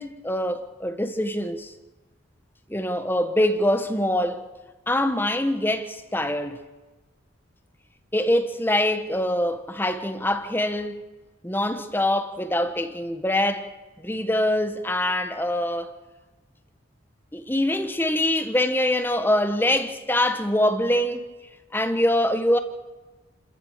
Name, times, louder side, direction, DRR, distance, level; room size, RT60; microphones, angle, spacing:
voice 1, 0.0-1.7 2.7-4.4 4.9-6.6 8.1-11.0 11.4-13.7 14.0-15.9 17.3-21.2 21.7-22.6, left 1 dB, 10° left, 1.3 m, -24 dB
29.5 x 13.5 x 7.4 m
head